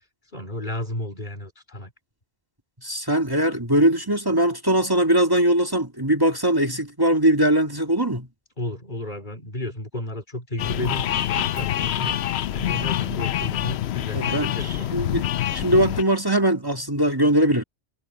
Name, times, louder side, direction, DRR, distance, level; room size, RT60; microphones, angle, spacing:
voice 1, 0.3-1.9 8.6-15.0, left 1 dB, 40° left, 3.7 m, -33 dB
voice 2, 2.8-8.3 14.1-15.3 15.5-17.6, right 1 dB, 20° right, 2.0 m, -21 dB
sound 1, 10.6-16.0, left 12 dB, 70° left, 0.8 m, -26 dB
omnidirectional pair, 1.2 m